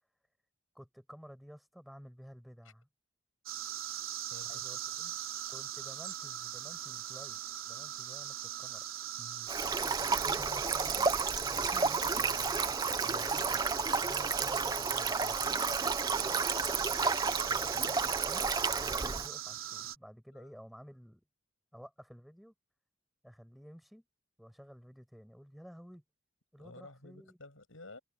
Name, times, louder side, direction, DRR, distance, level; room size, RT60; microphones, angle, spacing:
voice 1, 0.7-2.9 4.5-4.8 5.5-8.8 10.1-11.2 11.4-12.9 13.1-15.6 16.1-16.4 17.4-21.2 21.7-22.5 23.2-24.0 24.4-26.0 26.5-27.4, equal, ahead, 6.1 m, -53 dB
sound 1, 3.5-20.0, right 11 dB, 80° right, 3.4 m, -40 dB
voice 2, 4.2-5.2 7.0-7.1 9.2-9.5 13.0-13.3 20.3-20.5 26.6-28.0, left 2 dB, 80° left, 7.3 m, -53 dB
Stream, 9.5-19.3, right 4 dB, 20° right, 0.6 m, -31 dB
head